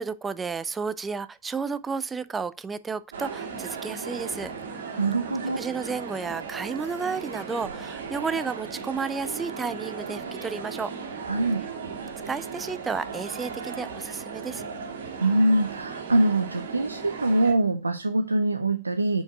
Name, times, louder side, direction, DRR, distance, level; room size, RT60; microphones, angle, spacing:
voice 1, 0.0-4.8 5.5-10.9 12.3-14.6, right 5 dB, 15° right, 0.4 m, -32 dB
sound 1, 3.1-17.5, right 5 dB, 65° right, 1.9 m, -36 dB
voice 2, 4.9-5.6 11.2-11.7 15.2-19.2, right 2 dB, 80° right, 0.4 m, -24 dB
5.2 x 4.6 x 4.5 m
figure-of-eight pair, 90°, 0 cm